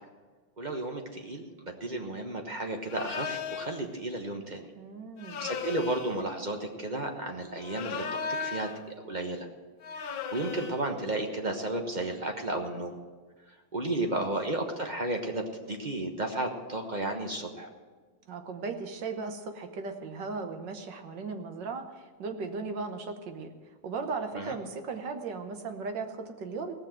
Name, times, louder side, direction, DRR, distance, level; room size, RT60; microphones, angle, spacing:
voice 1, 0.6-4.7 5.4-9.5 10.3-12.9 13.7-17.7 24.3-24.5, right 2 dB, 30° right, 3 dB, 1.0 m, -33 dB
sound 1, 2.9-3.8 5.2-6.2 7.6-8.8 9.8-10.9, left 5 dB, 75° left, 1.7 m, -36 dB
voice 2, 4.7-5.5 18.3-23.5 23.8-26.8, right 4 dB, 65° right, 6 dB, 1.7 m, -37 dB
18.0 x 6.5 x 7.7 m, 1.4 s
omnidirectional pair, 2.2 m